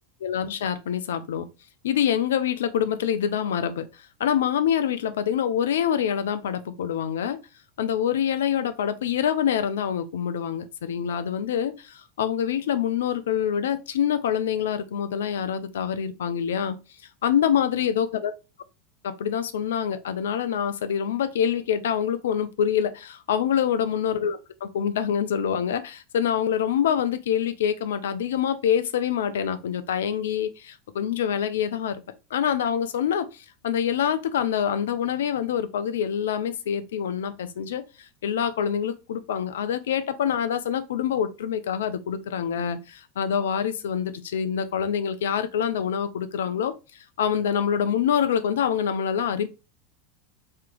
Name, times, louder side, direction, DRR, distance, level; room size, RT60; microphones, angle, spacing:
voice 1, 0.2-1.5 1.8-3.9 4.2-7.4 7.8-16.8 17.2-18.3 19.0-32.0 32.3-37.8 38.2-46.7 47.2-49.5, left 8 dB, 70° left, 0.4 m, -26 dB
3.2 x 2.9 x 3.7 m
figure-of-eight pair, 85°, 0 cm